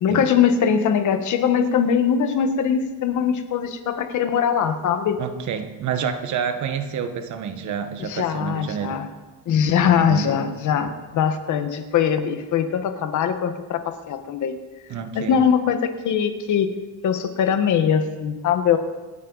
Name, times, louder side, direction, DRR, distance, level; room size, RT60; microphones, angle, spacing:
voice 1, 0.0-5.2 8.0-9.1 9.5-14.5 15.1-16.7 17.0-18.8, left 7 dB, 55° left, 1.4 m, -21 dB
voice 2, 5.2-9.0 9.9-10.3 14.9-15.4, right 7 dB, 50° right, 1.3 m, -28 dB
27.0 x 9.3 x 4.1 m
cardioid pair, 165°, 36 cm